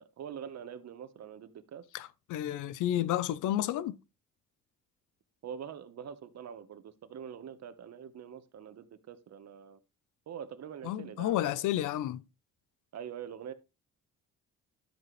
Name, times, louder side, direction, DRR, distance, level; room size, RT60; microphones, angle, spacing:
voice 1, 0.0-1.9 5.4-9.8 10.3-11.6 12.9-13.5, right 8 dB, 60° right, 1.2 m, -44 dB
voice 2, 1.9-4.0 10.8-12.2, left 12 dB, 85° left, 0.6 m, -31 dB
12.0 x 7.7 x 3.2 m
cardioid pair, 90°, 30 cm